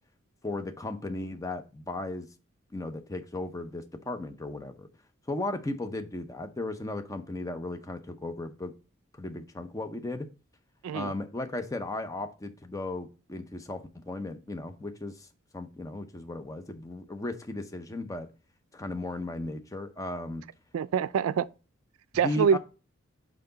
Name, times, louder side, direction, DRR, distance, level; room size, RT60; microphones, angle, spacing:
voice 1, 0.4-2.3 2.7-4.9 5.3-8.7 9.2-10.3 10.9-15.3 15.5-18.3 18.7-20.4 22.2-22.6, left 2 dB, 15° left, 0.5 m, -36 dB
voice 2, 20.7-21.5 22.1-22.6, right 7 dB, 85° right, 0.3 m, -25 dB
5.7 x 4.8 x 3.8 m
head